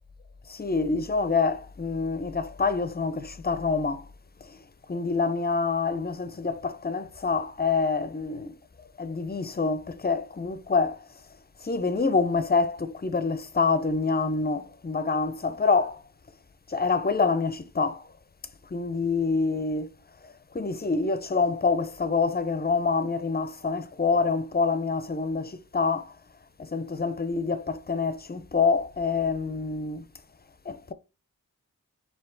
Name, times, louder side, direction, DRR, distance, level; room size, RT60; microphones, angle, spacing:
voice 1, 0.5-4.0 4.9-8.5 9.0-11.0 11.6-16.0 16.7-18.0 18.7-19.9 20.5-26.1 26.6-30.0 30.7-30.9, left 4 dB, 25° left, 0.4 m, -26 dB
4.6 x 2.7 x 3.7 m
wide cardioid pair, 50°, 37 cm